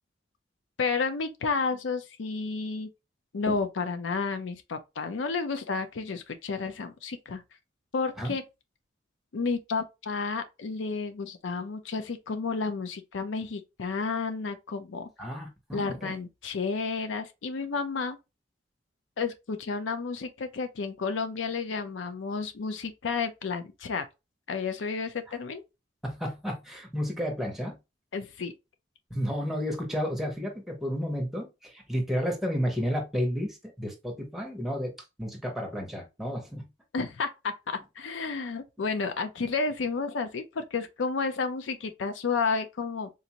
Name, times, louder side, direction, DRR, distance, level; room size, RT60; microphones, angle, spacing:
voice 1, 0.8-2.9 3.3-7.4 7.9-8.4 9.3-15.1 15.7-18.2 19.2-24.0 24.5-25.6 28.1-28.5 36.9-43.1, left 4 dB, 85° left, 0.5 m, -31 dB
voice 2, 15.2-16.1 26.0-27.8 29.1-36.7, equal, ahead, 0.9 m, -32 dB
3.9 x 2.5 x 2.9 m
head